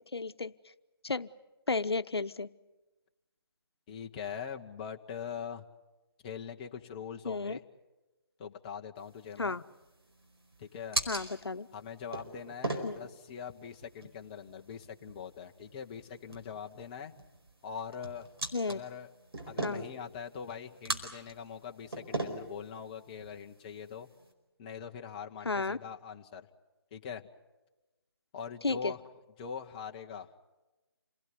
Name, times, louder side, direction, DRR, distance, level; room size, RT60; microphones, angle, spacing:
voice 1, 0.1-0.5 1.0-1.3 1.7-2.5 7.2-7.6 9.4-9.6 11.1-11.7 12.8-13.0 18.5-18.8 19.6-19.8 25.4-25.8 28.6-28.9, left 3 dB, 85° left, 12 dB, 0.9 m, -32 dB
voice 2, 3.9-5.6 6.2-7.6 8.4-9.6 10.6-11.0 11.7-17.1 17.6-18.3 18.7-19.1 19.5-24.1 24.6-26.5 26.9-27.2 28.3-29.0 29.4-30.3, left 7 dB, 20° left, 4 dB, 1.1 m, -42 dB
sound 1, 9.0-24.3, right 2 dB, 80° right, 4.9 m, -41 dB
28.0 x 18.0 x 9.6 m, 1.1 s
figure-of-eight pair, 155°, 13 cm